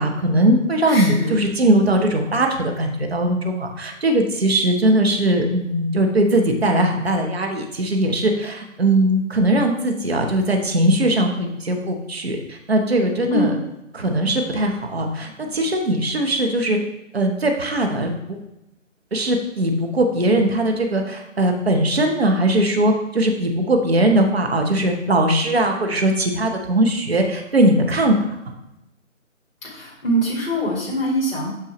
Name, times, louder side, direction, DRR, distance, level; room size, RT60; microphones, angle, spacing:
voice 1, 0.0-13.5 13.9-16.8 17.1-18.4 19.1-28.4, right 1 dB, 50° right, 3 dB, 0.9 m, -20 dB
voice 2, 0.8-1.4 13.3-13.5 29.6-31.5, right 1 dB, 45° left, -5 dB, 1.6 m, -23 dB
6.3 x 5.7 x 3.0 m, 0.88 s
figure-of-eight pair, 175°, 39 cm